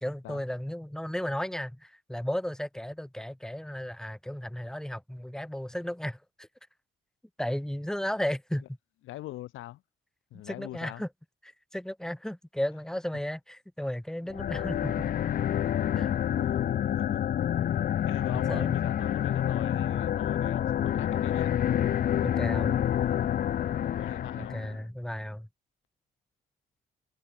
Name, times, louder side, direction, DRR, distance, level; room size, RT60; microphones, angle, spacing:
voice 1, 0.0-6.5 7.4-8.6 10.5-11.1 11.7-15.0 16.0-16.2 18.5-18.7 22.2-22.8 24.3-25.5, left 1 dB, 5° left, 2.2 m, -34 dB
voice 2, 9.0-9.8 10.3-11.0 16.5-16.6 17.0-17.2 18.1-21.5 24.0-24.6, left 16 dB, 85° left, 1.4 m, -41 dB
sound 1, 14.3-24.8, left 10 dB, 45° left, 0.5 m, -28 dB
cardioid pair, 90°, 20 cm